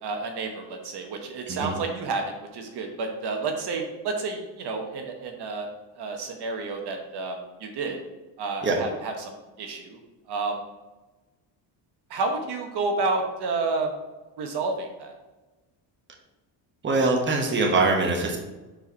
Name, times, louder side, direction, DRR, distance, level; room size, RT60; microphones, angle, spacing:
voice 1, 0.0-5.7 5.9-8.0 8.4-9.3 9.6-10.0 10.3-10.6 12.1-13.9 14.4-15.2, right 3 dB, 60° right, 3 dB, 1.1 m, -30 dB
voice 2, 16.8-18.4, right 3 dB, 25° right, 1 dB, 1.1 m, -23 dB
4.5 x 4.5 x 5.4 m, 1.1 s
cardioid pair, 115°, 45 cm